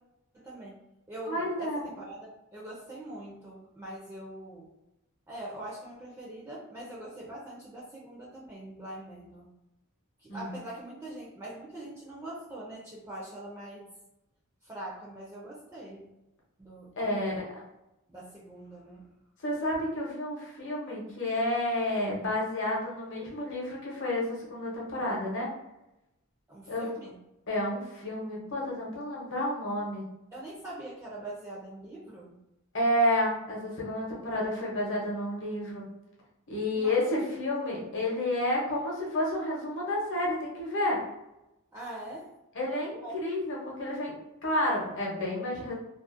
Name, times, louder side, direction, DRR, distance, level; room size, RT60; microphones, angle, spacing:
voice 1, 0.3-0.7 1.1-4.7 5.3-9.5 10.2-13.9 14.6-16.1 16.6-17.4 18.1-19.1 26.5-27.2 30.3-32.4 36.7-37.1 37.7-37.9 41.7-42.3 43.0-43.1, right 1 dB, 15° right, -5 dB, 0.4 m, -43 dB
voice 2, 1.3-1.9 10.3-10.5 17.0-17.3 19.4-25.5 26.7-26.9 27.5-30.0 32.7-35.8 36.5-41.0 42.6-44.1 44.4-45.7, left 1 dB, 60° left, -3 dB, 0.8 m, -30 dB
2.4 x 2.0 x 2.5 m, 0.92 s
head